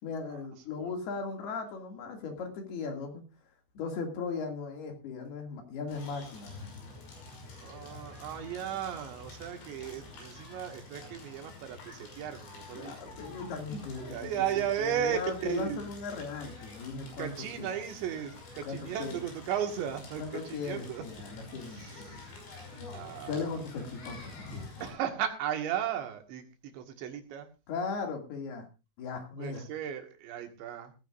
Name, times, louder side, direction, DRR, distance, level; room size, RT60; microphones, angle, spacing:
voice 1, 0.0-3.2 3.7-6.7 12.7-14.3 14.8-17.7 18.6-19.2 20.2-22.2 23.3-24.7 27.7-28.7 29.0-29.7, left 4 dB, 65° left, 3 dB, 4.3 m, -38 dB
Crackle, 5.9-24.9, left 3 dB, 85° left, 7.8 m, -48 dB
voice 2, 7.6-13.2 14.0-15.2 15.5-15.8 17.2-21.1 21.7-22.3 22.9-23.4 24.8-27.5 29.4-30.9, right 9 dB, 85° right, 5 dB, 4.1 m, -35 dB
18.5 x 15.5 x 2.6 m, 0.29 s
omnidirectional pair, 5.0 m